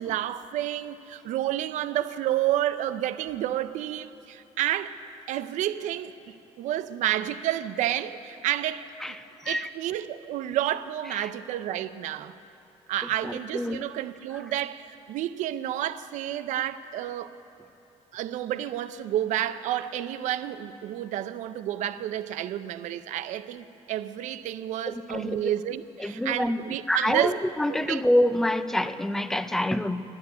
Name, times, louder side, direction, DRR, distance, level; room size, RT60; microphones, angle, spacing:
voice 1, 0.0-4.9 5.3-8.9 9.5-12.3 12.9-17.3 18.1-27.4 27.7-28.0, right 12 dB, 80° right, 0.6 m, -30 dB
voice 2, 9.0-9.7 11.1-11.3 13.0-13.8 24.9-25.5 26.0-30.0, left 1 dB, 5° left, 0.3 m, -27 dB
12.0 x 10.5 x 9.5 m
cardioid pair, 170°, 13 cm